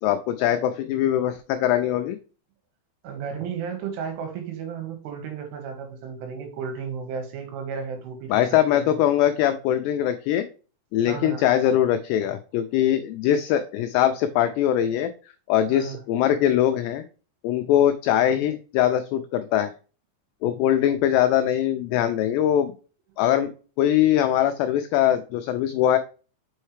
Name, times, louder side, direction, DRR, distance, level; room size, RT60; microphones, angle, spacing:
voice 1, 0.0-2.2 8.3-10.5 10.9-15.1 15.5-17.0 17.4-19.7 20.4-22.7 23.2-23.5 23.8-26.0, left 11 dB, 90° left, 9 dB, 2.4 m, -22 dB
voice 2, 3.0-8.4 8.7-9.0 11.1-11.4 15.7-16.0, right 6 dB, 85° right, 4 dB, 3.8 m, -33 dB
6.3 x 5.6 x 3.2 m, 0.37 s
omnidirectional pair, 5.4 m